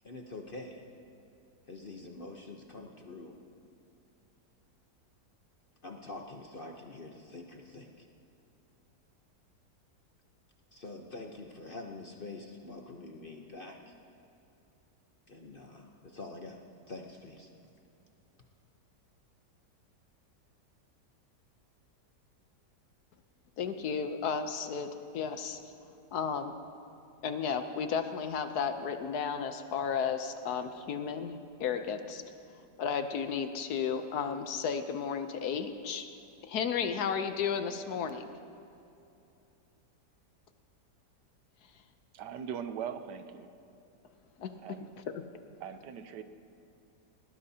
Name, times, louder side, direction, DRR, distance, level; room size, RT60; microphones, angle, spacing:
voice 1, 0.0-0.9 1.7-3.4 5.8-8.1 10.7-13.9 15.3-16.6 16.9-17.5, left 2 dB, 45° left, 2 dB, 0.8 m, -45 dB
voice 2, 23.6-25.6 26.1-26.6 27.2-31.3 31.6-32.2 32.8-36.1 36.4-38.3 44.4-44.8, left 6 dB, 65° left, 8 dB, 1.2 m, -33 dB
voice 3, 42.1-43.5 44.6-44.9 45.6-46.2, right 8 dB, 75° right, 9 dB, 1.3 m, -40 dB
20.0 x 18.5 x 2.8 m, 2.8 s
omnidirectional pair, 1.9 m